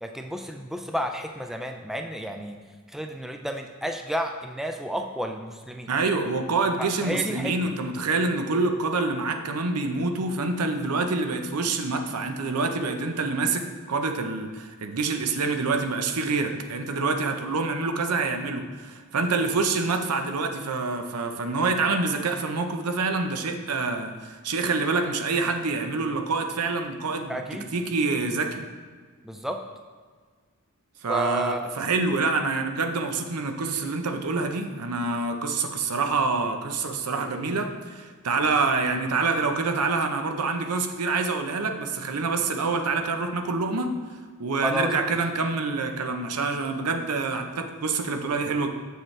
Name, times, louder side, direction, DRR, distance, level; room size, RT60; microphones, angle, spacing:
voice 1, 0.0-2.6 2.9-5.9 6.8-7.7 27.3-27.7 29.2-29.6 31.1-31.8 44.6-45.1, equal, ahead, 4 dB, 0.3 m, -31 dB
voice 2, 5.9-27.4 27.7-28.6 31.0-43.9 44.4-48.7, right 3 dB, 85° right, 6 dB, 0.7 m, -26 dB
7.4 x 6.6 x 3.3 m, 1.5 s
head